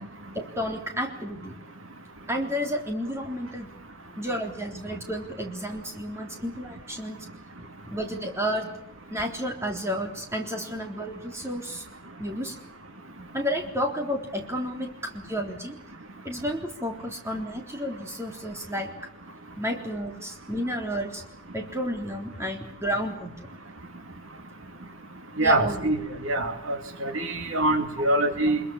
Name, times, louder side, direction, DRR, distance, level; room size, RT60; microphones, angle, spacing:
voice 1, 0.3-1.5 2.3-3.7 4.2-7.3 7.8-8.7 9.1-11.8 12.2-12.6 13.3-15.8 16.2-18.9 19.6-21.2 21.5-23.5 25.4-25.9 26.4-26.6, equal, 10° right, 2 dB, 3.7 m, -31 dB
voice 2, 25.4-28.6, right 2 dB, 65° right, 6 dB, 2.5 m, -24 dB
25.0 x 22.5 x 7.2 m, 0.79 s
head